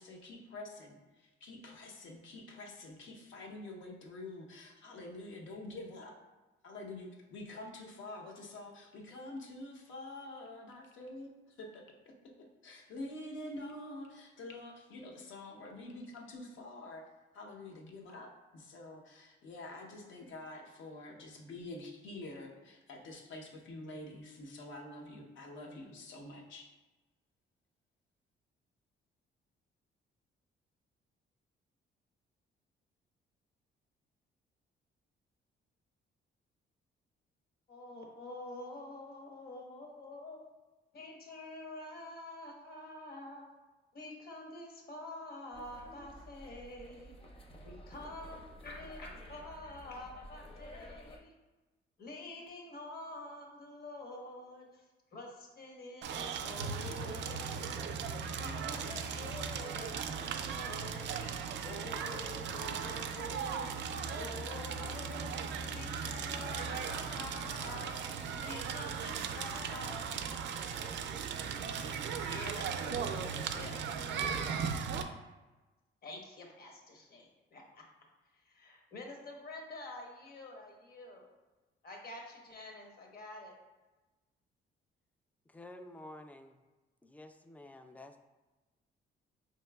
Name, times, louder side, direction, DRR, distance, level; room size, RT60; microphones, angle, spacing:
voice 1, 0.0-6.2 6.6-26.7, left 2 dB, 75° left, 1 dB, 0.8 m, -47 dB
voice 2, 37.7-40.5 40.9-43.5 43.9-47.2 47.6-51.4 52.0-57.8 58.4-61.3 61.6-63.8 64.1-71.4 71.8-75.1 76.0-77.8 78.3-81.3 81.8-83.5, left 2 dB, 50° left, 0 dB, 1.0 m, -47 dB
sound 1, 45.5-51.2, equal, 30° left, 0.7 m, -52 dB
Crackle, 56.0-75.0, right 6 dB, 65° right, 0.4 m, -37 dB
voice 3, 85.5-86.6 87.0-88.2, left 1 dB, 10° left, 7 dB, 0.3 m, -51 dB
4.6 x 3.0 x 2.3 m, 1.2 s
cardioid pair, 90°, 20 cm